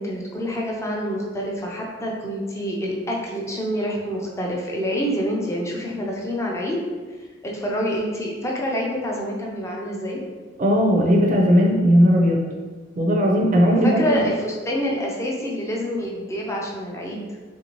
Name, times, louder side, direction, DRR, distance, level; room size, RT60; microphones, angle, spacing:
voice 1, 0.0-6.8 7.4-10.2 13.8-17.2, equal, 15° left, -2 dB, 0.4 m, -27 dB
voice 2, 10.6-12.4 13.0-14.3, equal, 45° right, 0 dB, 0.4 m, -17 dB
3.3 x 2.6 x 3.0 m, 1.4 s
head